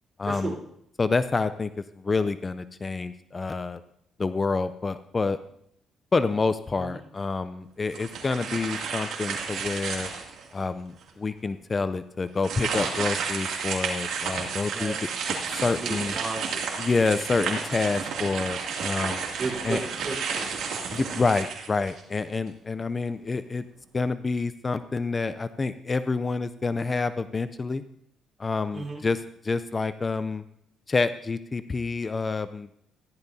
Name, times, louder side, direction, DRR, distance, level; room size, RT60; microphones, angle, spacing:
voice 1, 0.2-0.5 1.0-1.7 2.0-3.8 4.2-5.4 6.1-10.1 10.5-15.0 15.5-16.1 16.8-19.2 19.6-19.8 20.9-23.6 23.9-27.8 28.4-30.4 30.9-32.8, left 4 dB, 30° left, 12 dB, 0.4 m, -28 dB
sound 1, 7.9-10.5 11.0-11.1 12.4-22.2, right 6 dB, 75° right, 2.5 m, -31 dB
voice 2, 15.8-16.7 19.4-20.6 28.7-29.0, right 3 dB, 35° right, -2 dB, 3.9 m, -34 dB
14.5 x 11.5 x 2.7 m, 0.73 s
cardioid pair, 90°, 0 cm